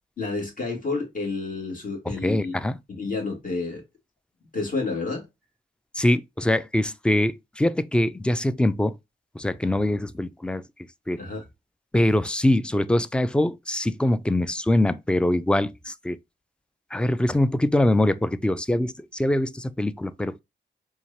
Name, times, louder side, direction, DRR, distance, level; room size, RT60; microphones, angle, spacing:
voice 1, 0.2-2.5 2.9-3.8 4.5-5.2 11.2-11.4, left 3 dB, 45° left, 2.2 m, -30 dB
voice 2, 2.1-2.8 5.9-8.9 9.3-10.7 11.1-11.2 11.9-16.2 16.9-20.4, left 1 dB, 5° left, 0.3 m, -23 dB
4.4 x 2.8 x 2.8 m
cardioid pair, 85°, 19 cm